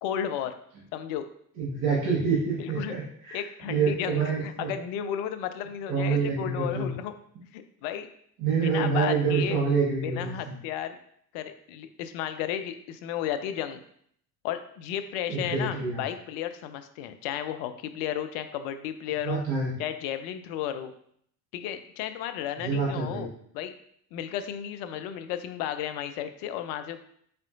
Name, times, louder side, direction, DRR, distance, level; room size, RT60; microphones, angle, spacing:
voice 1, 0.0-0.5 0.9-1.3 2.6-2.9 3.3-7.1 7.5-8.1 8.6-9.6 10.0-11.0 11.3-13.8 14.4-19.4 19.8-20.9 21.5-23.7 24.1-27.0, left 10 dB, 50° left, 9 dB, 0.5 m, -33 dB
voice 2, 1.6-4.7 5.9-6.9 8.4-10.6 15.3-16.0 19.2-19.7 22.6-23.3, right 5 dB, 60° right, -5 dB, 1.3 m, -27 dB
4.4 x 3.6 x 2.5 m, 0.67 s
figure-of-eight pair, 60°, 49 cm